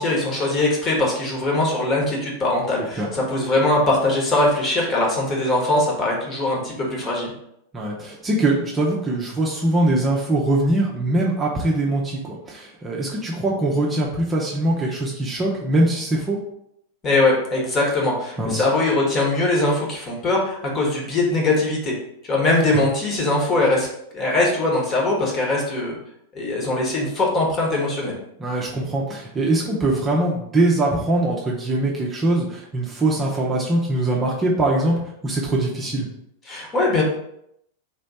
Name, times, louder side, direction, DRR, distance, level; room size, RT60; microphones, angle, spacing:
voice 1, 0.0-7.3 17.0-21.9 22.3-23.9 24.1-26.0 26.3-28.2 36.5-37.0, left 2 dB, 25° left, -2 dB, 1.4 m, -21 dB
voice 2, 7.7-16.4 18.4-18.7 28.4-35.0 35.2-36.1, right 2 dB, 20° right, -3 dB, 0.7 m, -22 dB
3.7 x 3.2 x 4.2 m, 0.77 s
figure-of-eight pair, 90°, 0 cm